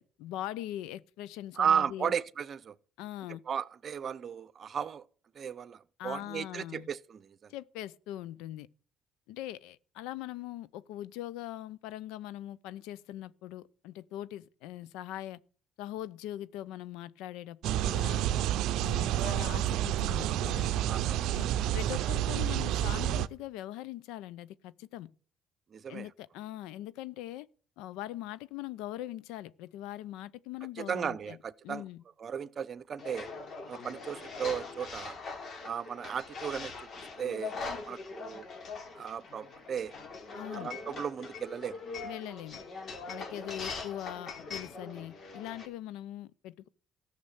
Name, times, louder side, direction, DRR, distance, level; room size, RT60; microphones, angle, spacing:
voice 1, 0.0-2.1 3.0-3.4 6.0-6.9 7.5-8.7 9.3-15.4 15.8-18.2 18.8-20.8 21.3-21.5 21.7-25.1 25.9-27.5 27.8-31.4 31.6-32.0 40.4-40.7 42.0-42.6 43.1-46.7, left 13 dB, 90° left, 0.6 m, -41 dB
voice 2, 1.6-2.8 3.5-5.0 5.3-7.5 20.8-21.3 25.7-26.1 30.8-31.8 32.2-33.3 33.7-35.1 35.6-37.5 37.8-38.5 38.9-39.9 40.5-41.8, right 8 dB, 50° right, 0.7 m, -35 dB
sound 1, 17.6-23.3, right 12 dB, 80° right, 0.5 m, -29 dB
sound 2, 33.0-45.7, left 4 dB, 55° left, 3.2 m, -42 dB
14.0 x 6.7 x 8.2 m
supercardioid pair, 80°, 0 cm